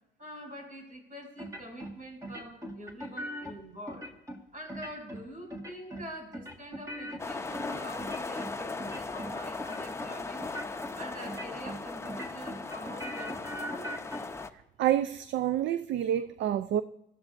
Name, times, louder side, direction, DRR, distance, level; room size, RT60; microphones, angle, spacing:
voice 1, 0.2-4.1 4.5-10.5 10.9-13.9, equal, 40° right, 5.7 m, -45 dB
sound 1, 1.4-1.9 2.2-3.5 3.9-4.4 4.7-5.2 5.5-6.1 6.3-8.5 8.8-9.3 9.6-10.1 10.4-10.9 11.2-11.8 12.0-14.2, equal, 15° right, 1.6 m, -40 dB
sound 2, 7.2-14.5, left 3 dB, 15° left, 0.7 m, -38 dB
voice 2, 14.5-16.8, right 11 dB, 65° right, 0.4 m, -28 dB
20.0 x 13.5 x 2.6 m
cardioid pair, 90°, 20 cm